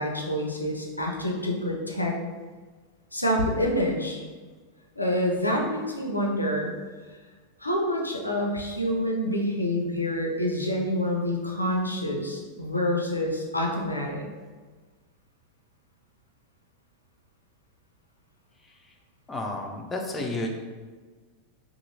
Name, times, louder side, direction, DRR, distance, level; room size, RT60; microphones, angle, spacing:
voice 1, 0.0-2.1 3.1-4.2 5.0-6.7 7.6-14.3, left 1 dB, 85° left, -1 dB, 0.4 m, -27 dB
voice 2, 19.3-20.5, left 1 dB, 15° left, 1 dB, 0.4 m, -31 dB
2.8 x 2.6 x 2.7 m, 1.4 s
figure-of-eight pair, 90°, 0 cm